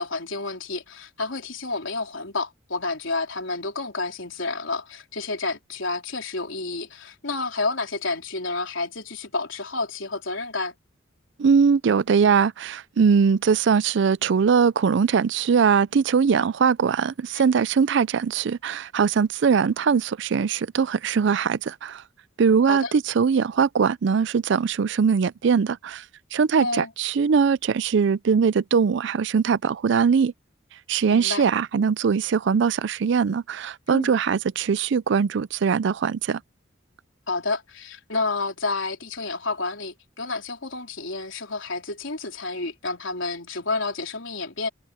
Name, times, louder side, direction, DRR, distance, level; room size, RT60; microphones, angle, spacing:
voice 1, 0.0-10.7 17.3-17.4 22.7-22.9 26.6-26.9 31.1-31.4 33.9-34.2 37.3-44.7, left 3 dB, 80° left, 3.8 m, -30 dB
voice 2, 11.4-22.0 22.4-26.0 26.3-30.3 30.9-36.4, right 6 dB, 65° right, 0.4 m, -21 dB
head